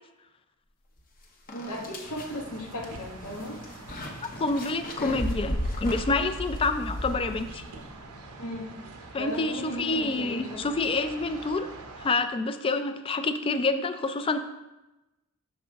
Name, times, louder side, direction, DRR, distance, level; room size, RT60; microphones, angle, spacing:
sound 1, 1.0-1.1 1.5-7.8, equal, 40° left, 0.8 m, -35 dB
voice 1, 1.5-3.6 8.4-8.7 9.2-10.9, equal, 85° left, 1 dB, 1.1 m, -36 dB
sound 2, 2.0-12.1, right 3 dB, 85° right, 0.8 m, -46 dB
voice 2, 4.2-7.6 9.1-11.7 12.0-14.4, left 3 dB, 25° left, 10 dB, 0.3 m, -28 dB
5.9 x 5.4 x 3.4 m, 1.0 s
head